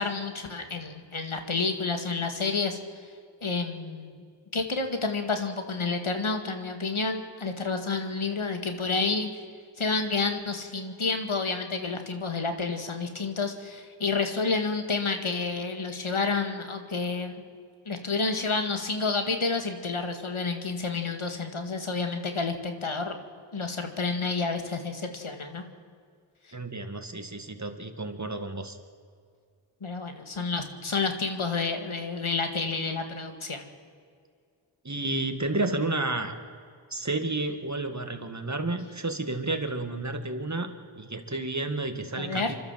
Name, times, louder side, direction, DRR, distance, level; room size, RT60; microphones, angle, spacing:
voice 1, 0.0-2.8 3.4-4.2 4.5-9.3 9.8-17.4 17.9-23.1 23.5-25.6 29.8-33.7 42.2-42.5, left 4 dB, 80° left, 6 dB, 2.2 m, -29 dB
voice 2, 26.5-28.8 34.8-36.4 36.9-42.6, right 2 dB, 35° right, 6 dB, 2.1 m, -31 dB
28.0 x 12.5 x 7.6 m, 2.2 s
wide cardioid pair, 40°, 48 cm